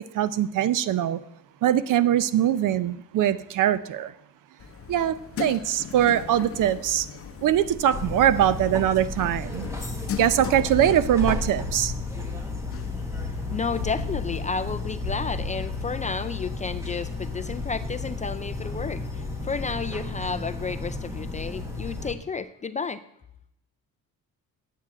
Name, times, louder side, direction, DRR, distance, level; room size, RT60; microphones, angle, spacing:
voice 1, 0.1-1.2 1.6-4.1 4.9-7.1 7.4-9.7 10.2-11.9, right 11 dB, 60° right, 0.7 m, -22 dB
sound 1, 4.6-19.4, left 8 dB, 40° left, 0.8 m, -41 dB
sound 2, 7.4-14.3, right 1 dB, 85° right, 4.9 m, -50 dB
sound 3, 7.9-22.1, left 3 dB, 10° right, 1.5 m, -32 dB
voice 2, 13.5-23.0, left 5 dB, 20° left, 0.3 m, -32 dB
9.8 x 8.4 x 7.4 m
cardioid pair, 155°, 35 cm